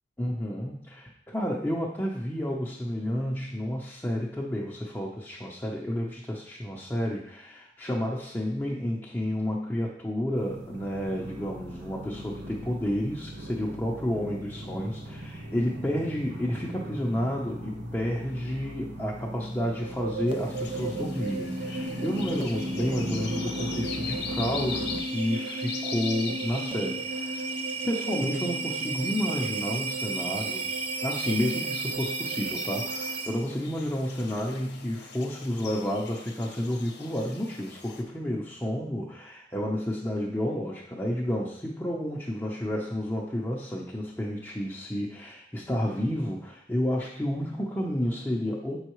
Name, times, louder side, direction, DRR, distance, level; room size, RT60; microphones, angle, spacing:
voice 1, 0.2-27.5 27.8-30.7 31.0-48.8, equal, 10° left, -5 dB, 0.7 m, -31 dB
sound 1, 10.3-25.0, equal, 80° right, 1.0 m, -38 dB
sound 2, 19.6-33.6, right 3 dB, 30° right, 0.4 m, -33 dB
sound 3, 20.3-38.0, left 5 dB, 65° left, 0.8 m, -42 dB
7.3 x 5.5 x 3.0 m, 0.69 s
head